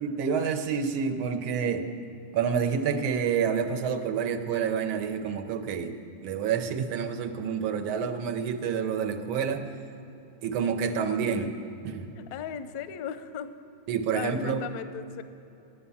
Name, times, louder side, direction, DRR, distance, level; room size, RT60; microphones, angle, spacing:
voice 1, 0.0-1.9 2.3-5.9 6.2-9.7 10.4-11.5 11.8-12.1 13.9-14.6, right 6 dB, 85° right, 6 dB, 1.6 m, -28 dB
voice 2, 12.2-13.5 14.1-15.2, left 8 dB, 70° left, 11 dB, 0.9 m, -37 dB
11.0 x 9.8 x 7.0 m, 2.9 s
omnidirectional pair, 2.2 m